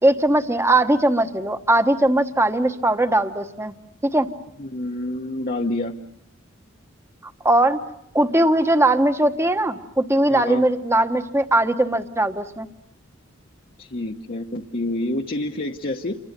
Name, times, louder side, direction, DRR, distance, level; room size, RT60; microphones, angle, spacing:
voice 1, 0.0-3.7 4.0-4.3 7.4-7.9 8.1-12.7, right 1 dB, 15° right, 9 dB, 1.1 m, -19 dB
voice 2, 4.6-5.9 10.3-10.6 13.8-16.1, left 1 dB, 45° left, 2 dB, 1.1 m, -28 dB
28.5 x 25.0 x 6.7 m, 0.78 s
head